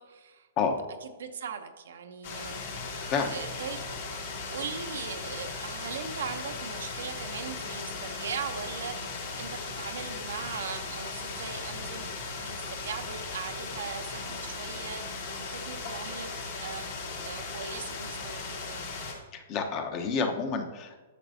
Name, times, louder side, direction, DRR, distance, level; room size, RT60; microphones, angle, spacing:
voice 1, 0.0-0.5 1.0-4.0 4.5-16.9 17.2-18.8, right 6 dB, 75° right, 6 dB, 0.8 m, -40 dB
sound 1, 2.2-19.1, left 3 dB, 65° left, 2.6 m, -37 dB
voice 2, 19.3-21.0, left 5 dB, 35° left, 5 dB, 1.0 m, -29 dB
9.7 x 6.7 x 2.8 m, 1.3 s
hypercardioid pair, 130°, 0 cm